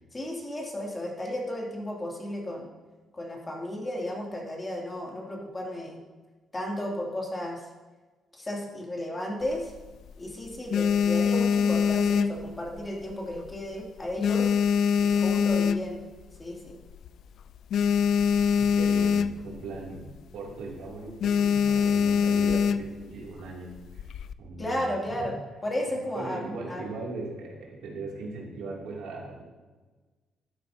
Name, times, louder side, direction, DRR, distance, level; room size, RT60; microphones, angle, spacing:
voice 1, 0.1-2.7 3.1-6.0 6.5-7.6 8.4-9.7 10.2-14.5 15.0-16.0 16.4-16.8 24.6-25.3 25.6-26.9, left 1 dB, 20° left, -1 dB, 2.4 m, -33 dB
sound 1, 9.4-10.1 10.5-13.0 13.3-13.7 14.0-16.2 16.7-16.8 17.0-17.1 17.4-19.6 19.9-20.2 20.5-20.8 21.2-23.0 23.8-24.3, left 7 dB, 70° left, 0.3 m, -24 dB
voice 2, 18.6-20.1 20.3-24.1 24.4-24.8 25.2-25.3 26.1-29.4, right 3 dB, 85° right, -3 dB, 2.4 m, -39 dB
12.0 x 9.7 x 2.7 m, 1.3 s
cardioid pair, 90°, 0 cm